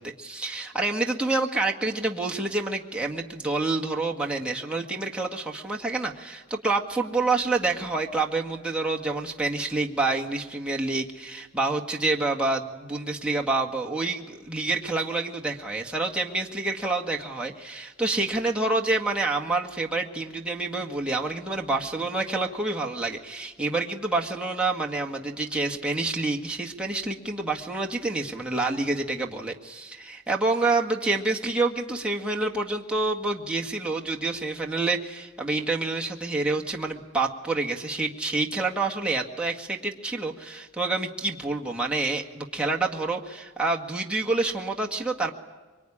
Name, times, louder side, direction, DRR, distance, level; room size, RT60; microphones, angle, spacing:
voice 1, 0.0-45.3, right 3 dB, 5° right, -1 dB, 1.8 m, -28 dB
24.5 x 24.0 x 10.0 m, 1.3 s
head